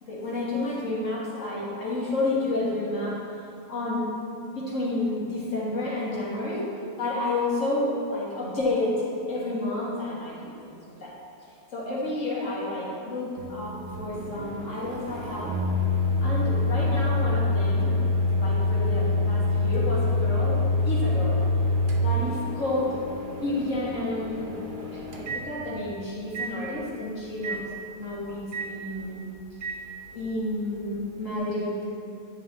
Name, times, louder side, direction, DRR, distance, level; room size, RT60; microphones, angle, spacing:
voice 1, 0.0-3.2 3.7-4.1 4.5-6.7 7.0-10.7 11.0-11.1 11.7-15.6 16.2-18.0 18.4-21.4 22.0-23.0 23.3-24.6 24.9-27.7 27.9-29.3 30.1-31.7, left 2 dB, 50° left, -6 dB, 1.9 m, -30 dB
Microwave oven, 13.4-25.9 26.3-26.5 27.4-27.6 28.5-28.7 29.6-29.8, left 2 dB, 65° right, 0.5 m, -26 dB
8.8 x 5.5 x 4.0 m, 2.5 s
omnidirectional pair, 1.8 m